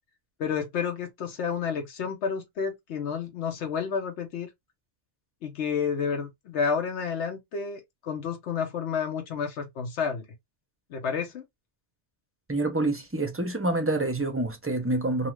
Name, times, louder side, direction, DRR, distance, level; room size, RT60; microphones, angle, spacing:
voice 1, 0.4-4.5 5.4-10.2 10.9-11.4, left 6 dB, 85° left, 1.0 m, -30 dB
voice 2, 12.5-15.3, right 2 dB, 20° right, 0.3 m, -27 dB
2.7 x 2.4 x 3.0 m
omnidirectional pair, 1.1 m